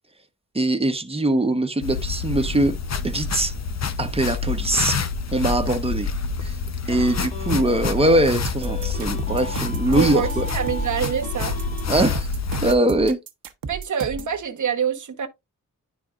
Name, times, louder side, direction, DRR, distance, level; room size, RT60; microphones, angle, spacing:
voice 1, 0.5-2.7 3.0-3.5 4.0-5.0 5.3-6.1 6.4-6.6 6.9-10.5 11.9-12.3 12.6-13.2, right 1 dB, 15° right, 1.1 m, -22 dB
sound 1, 1.8-12.7, left 4 dB, 50° left, 0.8 m, -27 dB
sound 2, 6.9-8.3 8.6-12.2, left 2 dB, 20° left, 2.0 m, -36 dB
sound 3, 8.4-14.4, right 6 dB, 85° right, 0.9 m, -34 dB
voice 2, 9.9-11.6 13.6-15.3, right 8 dB, 60° right, 1.1 m, -26 dB
10.5 x 4.1 x 2.4 m
wide cardioid pair, 95°, 33 cm